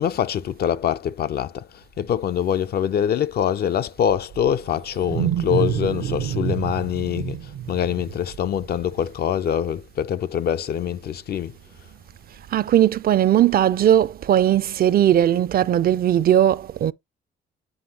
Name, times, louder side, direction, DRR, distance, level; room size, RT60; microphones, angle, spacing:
voice 1, 0.0-11.5, left 9 dB, 55° left, 0.4 m, -24 dB
Wild animals, 4.1-9.1, right 10 dB, 85° right, 0.8 m, -28 dB
voice 2, 12.5-16.9, right 11 dB, 50° right, 0.4 m, -18 dB
7.9 x 4.9 x 2.8 m
cardioid pair, 90°, 20 cm